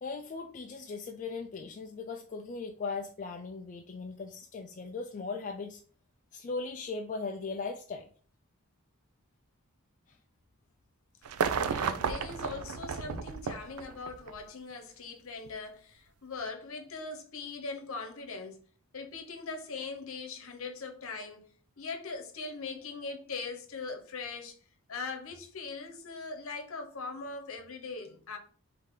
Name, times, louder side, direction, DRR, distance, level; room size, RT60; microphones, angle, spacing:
voice 1, 0.0-5.8 6.3-8.1, left 4 dB, 35° left, 0.3 m, -38 dB
sound 1, 11.3-14.4 15.5-15.6, right 6 dB, 85° right, 0.4 m, -33 dB
voice 2, 11.6-18.6 18.9-24.6 24.9-28.4, left 4 dB, 65° left, 0.9 m, -41 dB
3.7 x 2.8 x 4.7 m
head